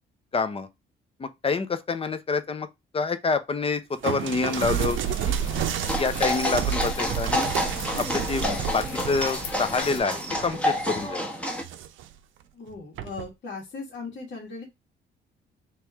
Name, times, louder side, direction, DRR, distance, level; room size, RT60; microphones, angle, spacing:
voice 1, 0.3-0.7 1.2-2.7 2.9-5.0 5.2-5.4 6.0-7.5 8.0-8.4 8.7-11.2, left 4 dB, 30° left, 0.6 m, -27 dB
sound 1, 4.0-11.0 11.5-12.1 13.0-13.3, right 10 dB, 75° right, 0.6 m, -31 dB
sound 2, 4.5-10.0, left 3 dB, 75° left, 0.8 m, -38 dB
sound 3, 5.8-11.6, left 1 dB, 5° left, 1.0 m, -29 dB
voice 2, 12.5-14.6, left 3 dB, 60° left, 1.8 m, -38 dB
3.1 x 3.0 x 3.5 m
cardioid pair, 90°, 20 cm